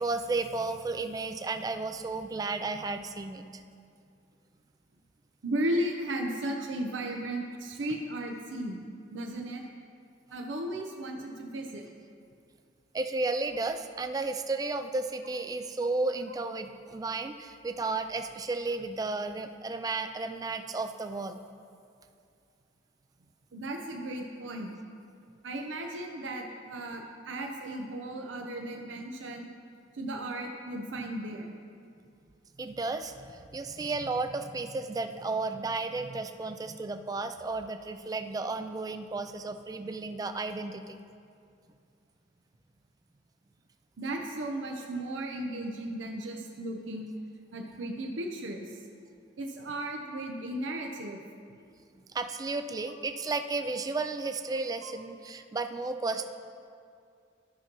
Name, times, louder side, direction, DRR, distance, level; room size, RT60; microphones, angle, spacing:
voice 1, 0.0-3.4 12.9-21.4 32.6-41.0 52.1-56.3, right 3 dB, 20° right, 7 dB, 0.3 m, -33 dB
voice 2, 5.4-8.9 9.1-9.6 10.3-11.9 23.5-24.7 25.4-29.5 29.9-31.5 44.0-47.1 47.5-48.7 49.4-51.2 54.8-54.9 56.1-56.2, right 1 dB, 85° right, 2 dB, 0.6 m, -35 dB
13.0 x 5.9 x 3.0 m, 2.3 s
head